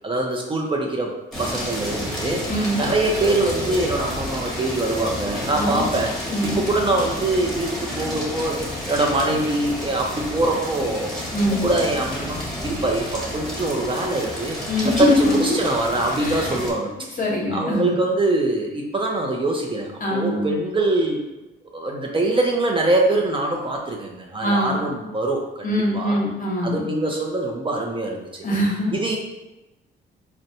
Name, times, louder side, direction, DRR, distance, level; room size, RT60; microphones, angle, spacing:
voice 1, 0.0-2.5 2.8-6.1 6.4-8.6 8.9-11.1 11.6-14.6 14.8-17.2 17.5-21.2 21.7-25.7 25.9-26.2 26.6-28.5 28.9-29.2, right 2 dB, 25° right, 0 dB, 0.5 m, -23 dB
sound 1, 1.3-16.7, equal, ahead, 1.3 m, -30 dB
voice 2, 2.5-2.8 5.6-5.9 6.3-6.6 11.3-11.6 14.7-15.6 16.2-16.5 17.2-17.9 20.0-20.5 24.4-24.8 25.6-26.8 28.4-29.0, left 1 dB, 45° left, -2 dB, 0.9 m, -22 dB
4.0 x 2.1 x 2.6 m, 1.0 s
cardioid pair, 90°, 20 cm